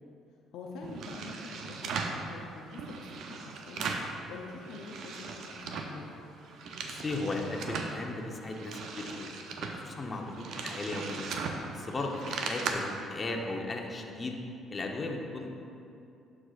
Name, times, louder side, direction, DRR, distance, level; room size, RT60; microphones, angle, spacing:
voice 1, 0.5-3.9 4.3-6.2, left 4 dB, 75° left, 0 dB, 0.5 m, -46 dB
sound 1, 0.8-2.2 2.7-4.1 4.5-6.0 6.4-7.9 8.4-12.7, right 5 dB, 70° right, 0.6 m, -38 dB
voice 2, 6.8-9.3 9.6-11.3 11.7-14.4 14.7-15.5, left 2 dB, 35° left, 1 dB, 0.9 m, -36 dB
11.5 x 4.9 x 2.5 m, 2.7 s
supercardioid pair, 65°, 0 cm